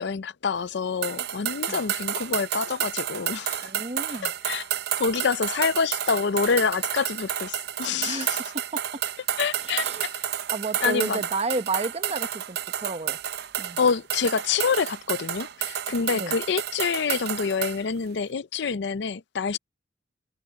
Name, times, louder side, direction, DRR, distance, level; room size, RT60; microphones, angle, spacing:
voice 1, 0.0-3.7 4.2-4.6 5.0-8.4 9.4-10.1 10.8-11.2 13.8-19.6, left 5 dB, 65° left, 0.5 m, -27 dB
sound 1, 1.0-17.8, right 10 dB, 60° right, 0.6 m, -31 dB
voice 2, 3.6-4.3 8.0-8.8 9.6-10.1 10.5-13.2 13.6-13.8 16.1-16.4, right 3 dB, 35° right, 0.9 m, -32 dB
head